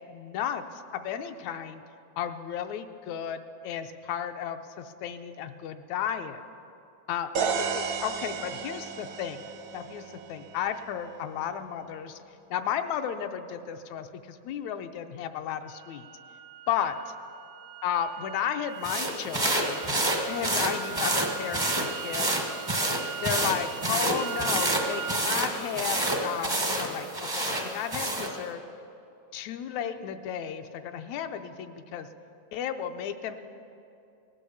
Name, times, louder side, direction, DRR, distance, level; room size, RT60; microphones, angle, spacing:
voice 1, 0.1-0.6 0.9-1.8 2.2-6.4 7.1-9.4 9.7-10.0 10.3-12.2 12.5-16.1 16.7-17.0 17.8-19.8 20.1-22.3 23.2-28.6 29.3-32.1 32.5-33.4, left 9 dB, 80° left, 8 dB, 1.9 m, -33 dB
sound 1, 7.3-11.2, right 6 dB, 65° right, 1.1 m, -33 dB
sound 2, 15.7-25.4, right 7 dB, 85° right, 2.0 m, -41 dB
sound 3, 18.8-28.3, right 1 dB, 30° right, 0.4 m, -28 dB
18.5 x 10.0 x 7.1 m, 2.6 s
omnidirectional pair, 3.3 m